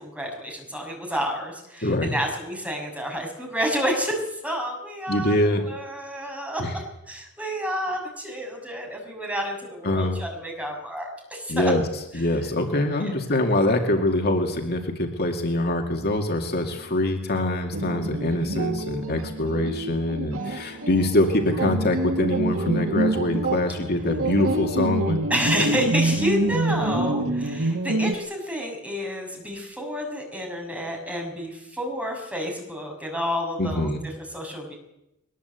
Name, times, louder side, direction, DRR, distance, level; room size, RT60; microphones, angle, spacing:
voice 1, 0.0-6.6 7.1-11.7 13.0-13.1 16.4-16.5 16.7-17.0 20.4-21.0 25.3-33.9 34.2-34.8, equal, 5° right, 1 dB, 6.5 m, -30 dB
voice 2, 1.8-2.1 5.1-5.6 6.6-6.7 9.8-10.2 11.5-11.8 12.1-25.2 33.6-34.0, left 1 dB, 50° left, 3 dB, 2.3 m, -24 dB
sound 1, 17.7-28.1, right 2 dB, 75° right, 1.9 m, -27 dB
21.5 x 20.5 x 8.2 m, 0.87 s
head